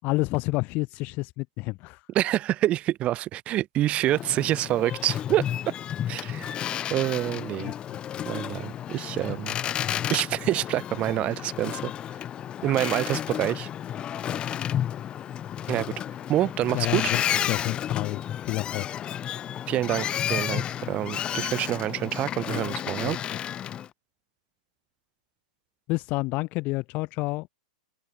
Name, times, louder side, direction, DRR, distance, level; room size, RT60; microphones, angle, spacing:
voice 1, 0.0-2.0 7.7-8.0 8.5-9.0 16.7-18.9 23.0-23.4 25.9-27.5, left 23 dB, 35° left, 4.1 m, -30 dB
voice 2, 2.1-5.5 6.1-6.6 6.9-7.7 8.3-9.5 10.1-11.9 12.6-13.7 15.7-15.9 16.3-17.1 19.7-23.2, right 14 dB, 30° right, 1.6 m, -27 dB
Boat Water vehicle, 4.1-23.9, left 10 dB, 20° left, 1.0 m, -32 dB
hypercardioid pair, 140°, 4 cm